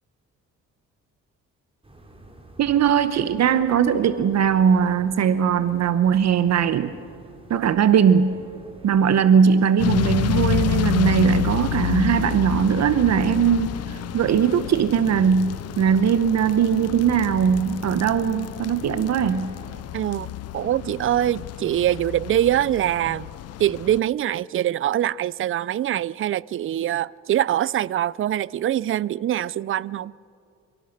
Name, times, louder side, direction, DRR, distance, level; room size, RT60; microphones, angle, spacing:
sound 1, 1.8-19.8, right 1 dB, 20° right, 3.8 m, -48 dB
voice 1, 2.6-6.9 7.5-8.4 8.8-19.5, right 7 dB, 60° right, 0.9 m, -20 dB
sound 2, 9.8-24.0, left 12 dB, 55° left, 0.5 m, -29 dB
voice 2, 19.9-23.3 23.6-30.1, right 12 dB, 45° right, 0.5 m, -24 dB
26.0 x 17.5 x 6.6 m
cardioid pair, 90°, 30 cm